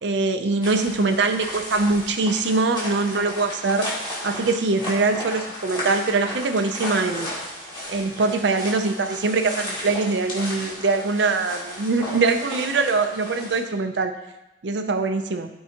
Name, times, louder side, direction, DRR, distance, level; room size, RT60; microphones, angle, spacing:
voice 1, 0.0-7.3 7.9-14.1 14.6-15.5, right 3 dB, 70° right, 6 dB, 0.6 m, -23 dB
sound 1, 0.6-13.6, left 1 dB, 25° left, 2.1 m, -34 dB
13.5 x 4.7 x 2.9 m, 0.94 s
head